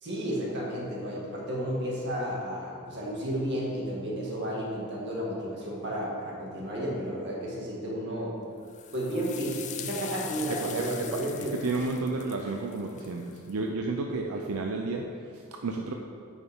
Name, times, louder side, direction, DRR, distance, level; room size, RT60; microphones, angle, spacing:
voice 1, 0.0-8.4 8.9-11.6, equal, 55° right, -4 dB, 2.0 m, -32 dB
sound 1, 8.7-13.5, left 9 dB, 35° left, 0.4 m, -42 dB
voice 2, 10.5-11.3 11.6-15.9, right 3 dB, 85° right, 2 dB, 0.5 m, -32 dB
9.0 x 6.4 x 3.6 m, 2.3 s
head